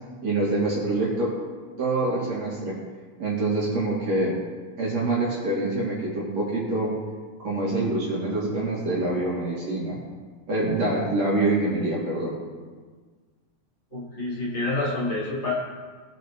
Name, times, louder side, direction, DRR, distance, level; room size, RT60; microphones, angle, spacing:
voice 1, 0.2-1.3 1.8-2.8 3.2-4.4 4.8-6.9 7.4-10.0 10.5-12.3, right 2 dB, 50° right, -7 dB, 3.6 m, -25 dB
voice 2, 13.9-15.5, left 2 dB, 35° left, -6 dB, 3.0 m, -28 dB
19.5 x 8.1 x 2.9 m, 1.5 s
omnidirectional pair, 4.0 m